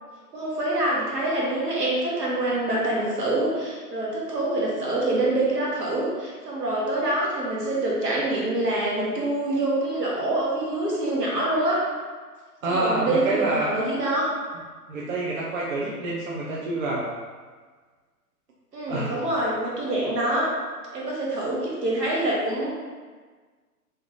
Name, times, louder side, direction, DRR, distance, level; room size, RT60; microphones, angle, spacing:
voice 1, 0.3-11.8 12.7-14.3 18.7-20.5 20.9-22.7, right 1 dB, 80° right, -4 dB, 1.2 m, -25 dB
voice 2, 12.6-13.8 14.9-17.1 18.9-19.1, right 2 dB, 55° right, -5 dB, 0.7 m, -27 dB
2.9 x 2.5 x 3.8 m, 1.5 s
figure-of-eight pair, 125°, 48 cm